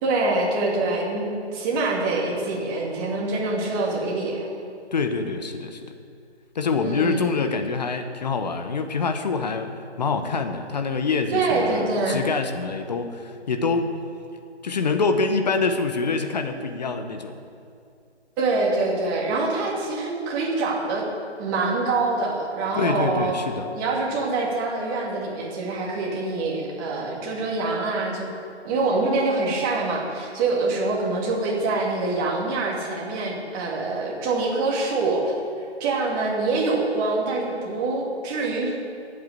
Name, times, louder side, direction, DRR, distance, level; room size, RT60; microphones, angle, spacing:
voice 1, 0.0-4.5 6.8-7.3 11.3-12.2 18.4-21.0 21.4-23.3 23.7-28.3 28.6-35.3 35.8-38.8, right 3 dB, 20° right, -2 dB, 2.1 m, -25 dB
voice 2, 4.9-5.9 6.5-9.7 10.0-13.9 14.6-17.4 22.7-23.7, left 4 dB, 40° left, 6 dB, 1.0 m, -25 dB
11.5 x 8.6 x 8.1 m, 2.4 s
figure-of-eight pair, 145°, 35 cm